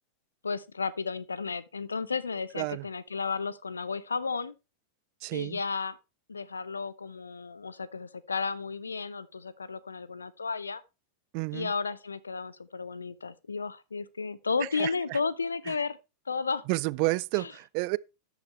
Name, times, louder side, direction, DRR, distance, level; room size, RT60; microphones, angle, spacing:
voice 1, 0.4-4.5 5.3-6.0 6.3-10.8 11.5-16.0 16.3-16.6 17.4-17.5, left 4 dB, 75° left, 0.8 m, -33 dB
voice 2, 2.6-2.9 5.2-5.6 11.3-11.7 14.7-15.2 15.7-15.8 16.7-18.0, right 25 dB, 45° right, 0.4 m, -30 dB
13.0 x 8.3 x 3.3 m
figure-of-eight pair, 90°, 0 cm